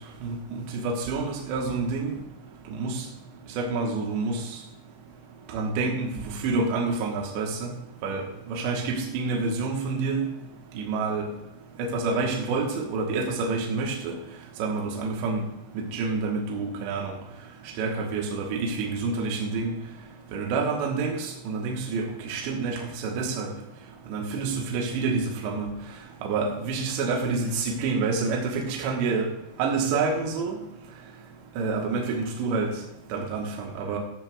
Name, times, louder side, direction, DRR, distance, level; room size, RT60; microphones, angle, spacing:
voice 1, 0.2-2.1 2.8-3.0 3.6-4.4 5.5-7.7 8.0-8.2 8.5-10.2 10.7-11.3 11.8-14.2 14.6-15.4 15.7-17.1 17.8-19.8 20.3-23.5 24.1-25.7 26.2-29.3 29.6-30.6 31.6-32.7 33.1-34.0, right 4 dB, 70° right, 0 dB, 3.3 m, -28 dB
13.5 x 12.5 x 2.4 m, 0.87 s
omnidirectional pair, 5.6 m